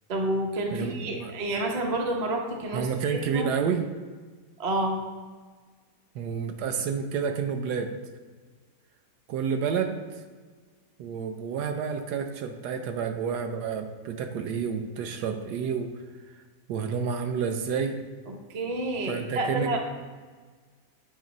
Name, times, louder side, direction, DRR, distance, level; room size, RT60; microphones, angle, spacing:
voice 1, 0.1-3.5 4.6-5.0 18.3-19.8, right 1 dB, 45° right, 2 dB, 0.5 m, -29 dB
voice 2, 0.7-1.3 2.7-3.8 6.1-7.9 9.3-10.0 11.0-15.9 16.7-18.0 19.1-19.8, right 6 dB, 75° right, 6 dB, 1.1 m, -29 dB
7.6 x 3.0 x 5.2 m, 1.4 s
omnidirectional pair, 1.8 m